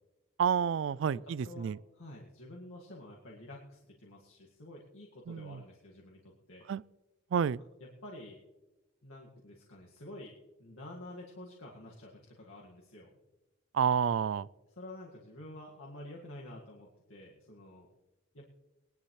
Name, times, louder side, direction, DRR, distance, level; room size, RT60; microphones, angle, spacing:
voice 1, 0.4-1.8 5.3-5.6 6.7-6.8 7.3-7.6 13.7-14.5, right 7 dB, 65° right, 0.3 m, -29 dB
voice 2, 1.1-6.6 8.0-8.4 9.0-10.3 10.6-13.1 14.8-17.9 18.3-18.5, left 1 dB, 85° left, 2.0 m, -49 dB
20.0 x 11.5 x 3.3 m
head